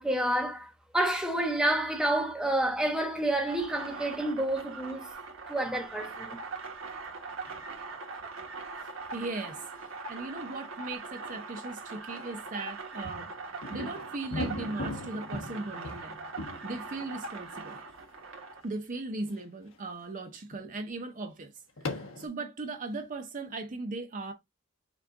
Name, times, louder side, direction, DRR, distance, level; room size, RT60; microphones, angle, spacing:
voice 1, 0.0-5.1 5.5-6.4, right 1 dB, 5° right, 1.0 m, -29 dB
sound 1, 3.4-18.6, right 4 dB, 80° right, 1.3 m, -42 dB
sound 2, 7.4-7.8 13.0-17.9 18.6-18.7 19.4-19.8 20.5-20.7 21.8-22.3, left 1 dB, 70° left, 1.2 m, -39 dB
voice 2, 9.1-13.3 13.7-16.2 16.6-17.8 18.6-24.3, right 2 dB, 40° right, 0.6 m, -38 dB
5.9 x 2.4 x 3.6 m
head